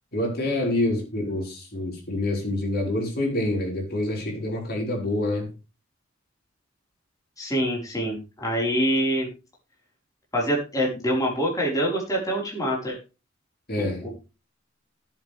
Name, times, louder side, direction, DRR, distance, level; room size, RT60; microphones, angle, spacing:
voice 1, 0.1-5.5 13.7-14.1, left 1 dB, 55° left, 0 dB, 5.8 m, -27 dB
voice 2, 7.4-9.3 10.3-13.0 13.8-14.1, equal, 20° left, -4 dB, 5.3 m, -25 dB
18.0 x 8.3 x 3.7 m, 0.31 s
head